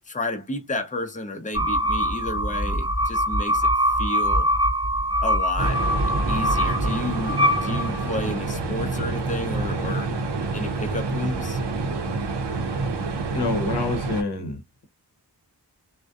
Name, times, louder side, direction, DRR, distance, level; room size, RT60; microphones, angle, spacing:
voice 1, 0.1-3.7 4.0-4.5 5.2-5.9 6.3-10.2 10.5-11.6, left 2 dB, 20° left, 0.6 m, -32 dB
sound 1, 1.5-8.3, equal, 10° right, 0.8 m, -23 dB
sound 2, 5.6-14.2, right 3 dB, 75° right, 0.6 m, -27 dB
voice 2, 13.3-14.8, left 2 dB, 70° left, 0.7 m, -27 dB
2.5 x 2.1 x 2.3 m
cardioid pair, 45°, 41 cm